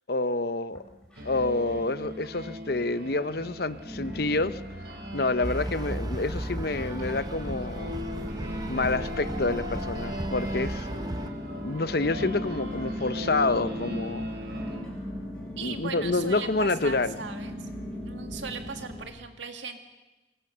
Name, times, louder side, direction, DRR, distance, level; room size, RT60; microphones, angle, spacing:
voice 1, 0.1-0.8 1.2-4.6 5.1-8.0 8.7-10.9 11.6-14.3 15.6-17.2, left 3 dB, 55° left, 14 dB, 0.8 m, -28 dB
sound 1, 0.7-1.6 1.9-2.5 3.0-3.1 3.8-19.0, left 1 dB, 5° left, 5.6 m, -40 dB
sound 2, 1.2-14.8, equal, 55° right, 4.9 m, -38 dB
sound 3, 5.4-11.3, right 1 dB, 20° right, 0.7 m, -36 dB
voice 2, 15.6-17.7 18.1-19.8, right 5 dB, 75° right, 6 dB, 2.2 m, -38 dB
25.0 x 22.0 x 6.8 m, 1.1 s
head